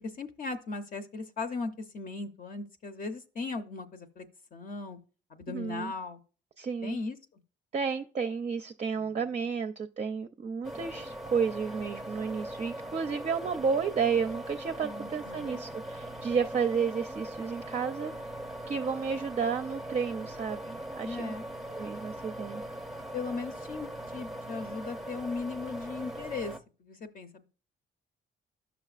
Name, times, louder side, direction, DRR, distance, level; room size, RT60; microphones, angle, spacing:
voice 1, 0.0-4.3 4.5-5.0 5.3-6.2 6.8-7.4 9.0-9.2 14.8-15.6 21.0-21.4 23.1-26.5 26.8-27.5, left 4 dB, 45° left, 0.7 m, -38 dB
voice 2, 5.5-5.9 6.6-7.0 7.7-18.1 18.7-21.3 21.7-22.6, right 6 dB, 35° right, 0.5 m, -32 dB
sound 1, 10.6-26.6, right 1 dB, ahead, 0.7 m, -40 dB
10.5 x 6.0 x 2.4 m
cardioid pair, 90°, 20 cm